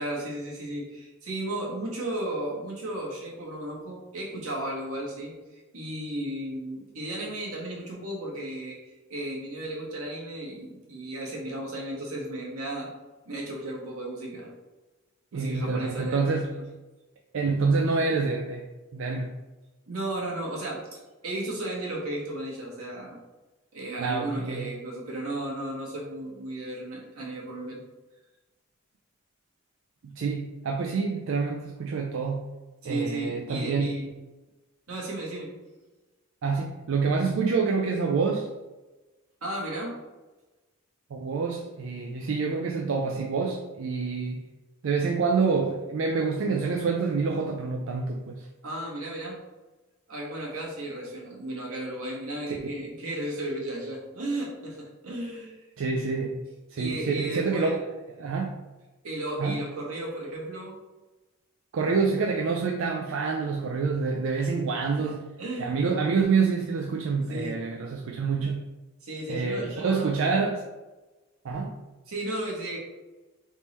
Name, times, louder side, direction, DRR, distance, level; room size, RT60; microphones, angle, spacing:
voice 1, 0.0-5.3 5.7-12.9 13.2-14.5 15.3-16.4 19.9-23.2 23.7-27.8 32.8-34.1 34.9-35.5 39.4-39.9 48.6-49.4 50.1-55.7 56.8-57.8 59.0-60.8 64.9-65.7 67.3-67.5 69.0-70.3 72.1-72.8, right 1 dB, 80° right, -3 dB, 1.3 m, -34 dB
voice 2, 15.3-16.6 17.3-18.7 18.9-19.4 24.0-24.7 30.0-32.5 32.8-34.1 36.4-38.5 41.1-44.4 44.8-48.5 52.5-52.6 55.8-56.4 56.7-57.8 58.2-58.6 59.4-59.6 61.7-65.2 65.6-68.6 69.3-70.6 71.4-71.8, right 4 dB, 60° right, 1 dB, 0.4 m, -27 dB
3.6 x 3.0 x 4.1 m, 1.1 s
head